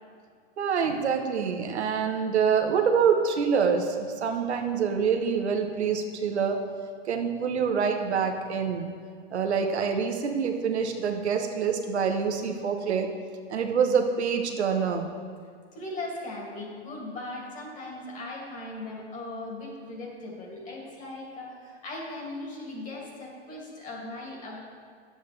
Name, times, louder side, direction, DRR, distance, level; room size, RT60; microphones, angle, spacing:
voice 1, 0.6-6.6 7.1-8.9 9.3-13.1 13.5-15.1, right 6 dB, 85° right, 4 dB, 1.0 m, -26 dB
voice 2, 15.7-24.6, left 2 dB, 25° left, -2 dB, 2.2 m, -38 dB
9.8 x 7.8 x 3.2 m, 2.1 s
hypercardioid pair, 130°, 32 cm